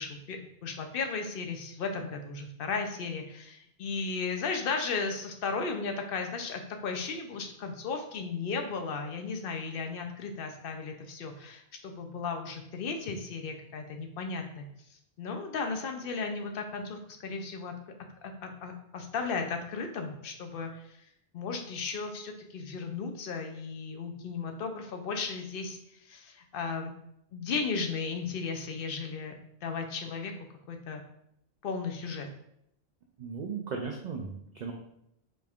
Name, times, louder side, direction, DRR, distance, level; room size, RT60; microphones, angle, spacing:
voice 1, 0.0-17.7 18.2-21.0 21.3-26.9 27.3-29.3 29.6-30.3 30.7-31.0 31.6-32.3, left 4 dB, 60° left, 4 dB, 0.7 m, -35 dB
voice 2, 33.2-34.7, right 5 dB, 55° right, 0 dB, 0.5 m, -36 dB
5.1 x 3.3 x 2.4 m, 0.75 s
omnidirectional pair, 1.1 m